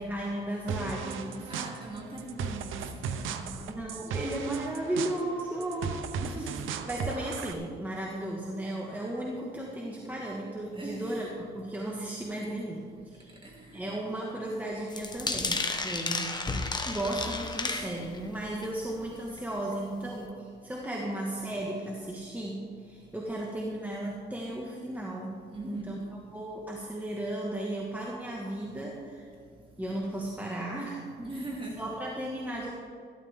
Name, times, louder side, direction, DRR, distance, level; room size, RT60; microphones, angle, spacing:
voice 1, 0.0-1.5 3.6-6.5 6.9-13.3 13.7-16.3 16.8-25.4 25.7-26.0 26.3-29.3 29.8-31.3 31.8-32.7, right 1 dB, 10° right, -3 dB, 1.7 m, -35 dB
sound 1, 0.7-7.5, right 6 dB, 80° right, 0.8 m, -36 dB
voice 2, 1.5-2.8 3.0-3.5 6.2-6.5 10.8-11.0 18.5-18.6 25.5-25.8 31.2-31.8, right 2 dB, 25° right, -2 dB, 2.6 m, -40 dB
sound 2, 14.9-18.3 18.6-18.9 19.4-19.5 19.7-19.8, left 3 dB, 20° left, 1.2 m, -32 dB
14.0 x 12.5 x 3.6 m, 2.2 s
cardioid pair, 90°, 20 cm